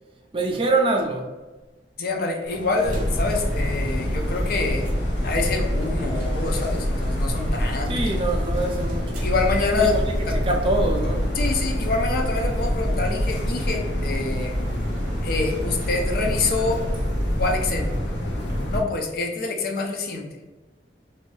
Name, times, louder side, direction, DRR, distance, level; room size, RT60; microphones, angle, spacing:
voice 1, 0.3-1.3 7.9-9.3 9.8-10.0 10.3-11.2, right 2 dB, 30° right, 2 dB, 0.4 m, -24 dB
voice 2, 2.0-4.9 5.2-8.0 9.2-10.0 10.3-10.4 11.4-14.5 15.2-16.8 17.4-17.9 18.7-20.3, left 3 dB, 55° left, 2 dB, 0.5 m, -26 dB
sound 1, 2.5-18.6, equal, 50° right, 0.8 m, -40 dB
sound 2, 2.8-18.8, equal, 90° left, 0.7 m, -26 dB
2.6 x 2.5 x 3.2 m, 1.2 s
head